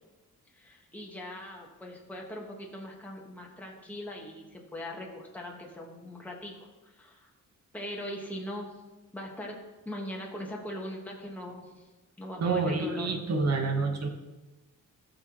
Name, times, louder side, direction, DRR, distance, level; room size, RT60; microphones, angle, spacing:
voice 1, 0.5-7.3 7.7-8.7 9.1-9.6 9.8-11.8 12.2-13.2, left 1 dB, 5° left, -2 dB, 1.5 m, -40 dB
voice 2, 12.4-14.1, right 3 dB, 50° right, 4 dB, 1.4 m, -28 dB
15.5 x 6.8 x 3.1 m, 1.1 s
wide cardioid pair, 145°, 32 cm